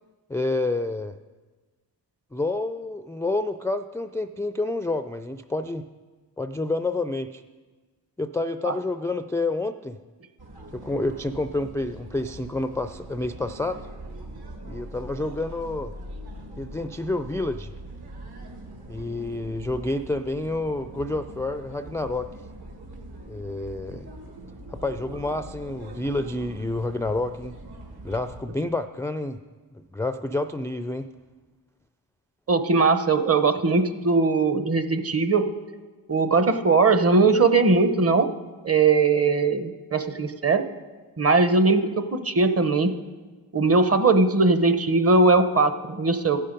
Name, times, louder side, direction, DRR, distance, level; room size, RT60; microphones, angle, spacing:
voice 1, 0.3-1.1 2.3-5.8 6.4-7.4 8.2-10.0 10.7-13.9 14.6-15.9 16.6-17.7 18.9-22.3 23.3-24.1 24.7-27.6 28.0-29.4 29.7-31.1, left 2 dB, 5° left, 9 dB, 0.3 m, -29 dB
sound 1, 10.4-28.4, right 1 dB, 60° right, 2.1 m, -42 dB
voice 2, 32.5-35.5 36.1-38.3 38.6-40.6 41.2-42.9 43.5-46.4, right 3 dB, 35° right, 9 dB, 0.9 m, -20 dB
15.5 x 5.6 x 5.2 m, 1.3 s
cardioid pair, 50°, 42 cm